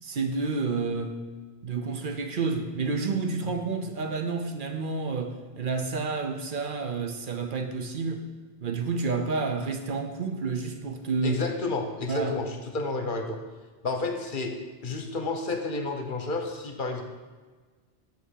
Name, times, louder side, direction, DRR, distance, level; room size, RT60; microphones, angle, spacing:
voice 1, 0.0-1.2 1.6-8.2 8.6-11.4 12.1-12.4, right 4 dB, 60° right, 5 dB, 0.8 m, -30 dB
voice 2, 11.2-13.4 13.8-14.5 14.8-17.0, left 3 dB, 55° left, 4 dB, 0.9 m, -30 dB
6.2 x 5.6 x 6.3 m, 1.4 s
omnidirectional pair, 1.0 m